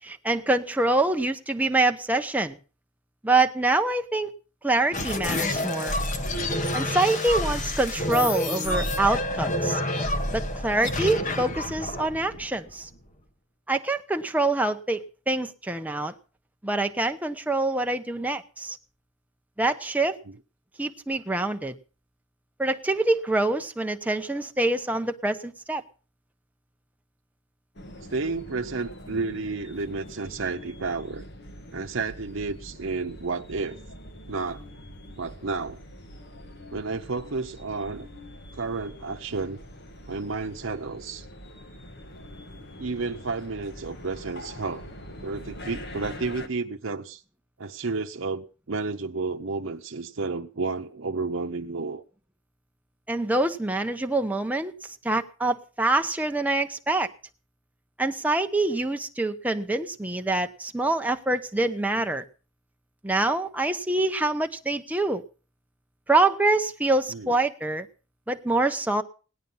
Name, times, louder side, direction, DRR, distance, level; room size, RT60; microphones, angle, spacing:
voice 1, 0.0-2.6 3.2-4.3 4.6-6.0 6.7-9.8 10.3-12.9 13.7-16.1 16.6-18.8 19.6-20.2 20.8-21.7 22.6-25.8 53.1-57.1 58.0-62.2 63.0-65.2 66.1-67.9 68.3-69.0, right 2 dB, 10° right, 0.9 m, -25 dB
sound 1, 4.9-13.1, left 1 dB, 40° left, 1.3 m, -28 dB
sound 2, 27.8-46.5, left 1 dB, 55° left, 1.6 m, -44 dB
voice 2, 28.1-31.2 31.7-33.8 34.3-34.6 35.2-35.8 36.7-38.1 38.5-39.6 40.1-41.3 42.8-44.9 45.2-47.2 47.6-52.0 67.1-67.4, right 4 dB, 80° right, 0.8 m, -31 dB
17.5 x 11.0 x 5.6 m
head